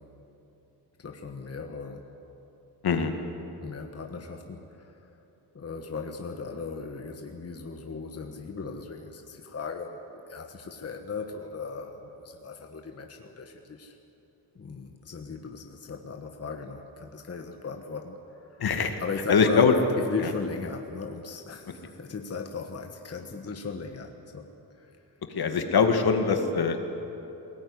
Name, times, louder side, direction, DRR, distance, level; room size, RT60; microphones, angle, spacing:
voice 1, 1.0-2.0 3.6-5.2 5.5-14.0 14.5-18.2 18.5-18.6 19.0-24.5 24.8-24.9, left 4 dB, 35° left, 4 dB, 1.5 m, -37 dB
voice 2, 18.6-19.0 19.3-19.8 20.2-20.3 25.3-26.8, left 5 dB, 65° left, 5 dB, 2.0 m, -22 dB
21.0 x 18.0 x 9.7 m, 3.0 s
wide cardioid pair, 115°, 41 cm